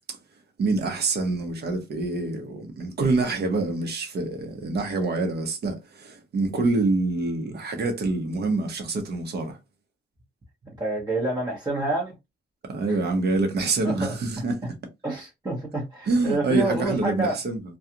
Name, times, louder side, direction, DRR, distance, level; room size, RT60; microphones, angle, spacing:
voice 1, 0.6-9.6 12.7-14.6 16.1-17.6, right 3 dB, 55° right, 1.0 m, -26 dB
voice 2, 10.8-12.1 12.9-13.0 13.8-14.2 15.0-17.4, right 2 dB, 20° right, 0.9 m, -28 dB
2.3 x 2.3 x 2.8 m
cardioid pair, 90°, 20 cm